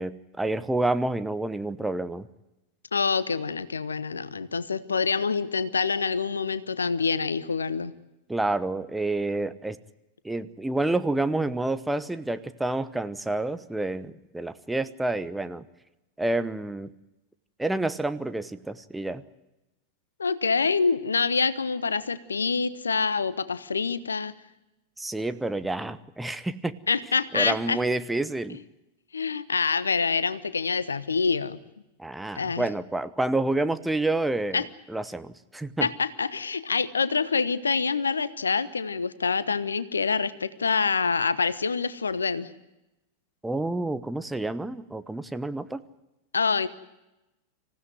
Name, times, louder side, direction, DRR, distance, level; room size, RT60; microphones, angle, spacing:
voice 1, 0.0-2.3 8.3-9.8 10.2-15.6 16.2-17.0 17.6-19.2 25.0-26.8 27.3-28.6 32.0-34.6 34.9-35.9 43.4-45.9, right 2 dB, 5° right, 12 dB, 1.0 m, -29 dB
voice 2, 2.9-7.9 20.2-24.3 26.9-27.8 29.1-31.6 32.3-32.7 34.5-34.7 35.8-42.5 46.3-46.7, left 5 dB, 75° left, 16 dB, 1.1 m, -26 dB
26.0 x 16.5 x 9.5 m, 0.97 s
figure-of-eight pair, 90°, 0 cm